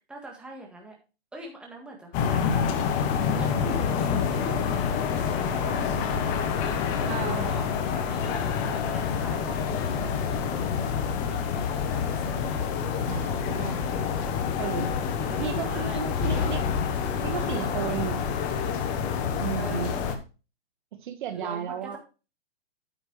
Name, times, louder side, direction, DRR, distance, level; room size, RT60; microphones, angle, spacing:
voice 1, 0.1-0.9 1.3-5.0 5.3-12.4 14.4-14.7 15.3-16.0 16.3-16.5 19.6-19.9 21.3-22.0, right 1 dB, 5° right, -1 dB, 1.6 m, -43 dB
sound 1, 2.1-20.2, left 6 dB, 25° left, 1.0 m, -27 dB
voice 2, 7.1-7.5 13.1-13.8 14.6-14.9 15.4-16.6 17.2-18.2 19.4-19.9 20.9-22.0, right 8 dB, 50° right, 8 dB, 1.4 m, -33 dB
9.1 x 7.3 x 3.2 m, 0.31 s
hypercardioid pair, 150°, 32 cm